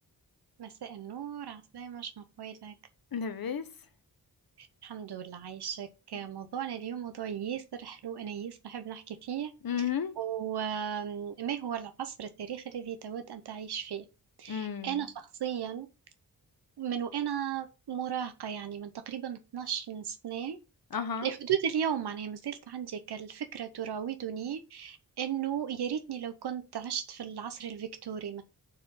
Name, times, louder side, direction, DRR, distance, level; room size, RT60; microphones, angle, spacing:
voice 1, 0.6-2.7 4.6-9.5 10.2-14.0 14.4-15.9 16.8-20.6 21.2-28.4, right 9 dB, 85° right, 0.8 m, -36 dB
voice 2, 3.1-3.7 9.6-10.1 14.5-15.0 20.9-21.3, left 7 dB, 65° left, 1.1 m, -33 dB
6.6 x 4.6 x 6.7 m
wide cardioid pair, 165°, 38 cm